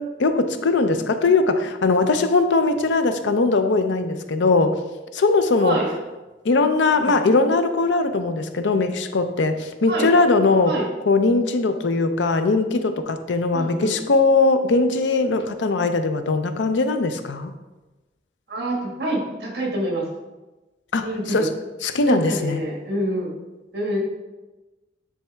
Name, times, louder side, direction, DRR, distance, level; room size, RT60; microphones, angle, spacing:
voice 1, 0.0-4.8 5.1-5.8 6.4-10.8 11.1-17.5 20.9-21.5 21.8-22.6, left 3 dB, 85° left, 8 dB, 0.5 m, -20 dB
voice 2, 13.5-14.0 18.5-20.1 21.0-21.5 22.0-23.4 23.7-24.0, right 1 dB, 60° right, -2 dB, 1.7 m, -26 dB
10.0 x 3.4 x 3.4 m, 1.1 s
head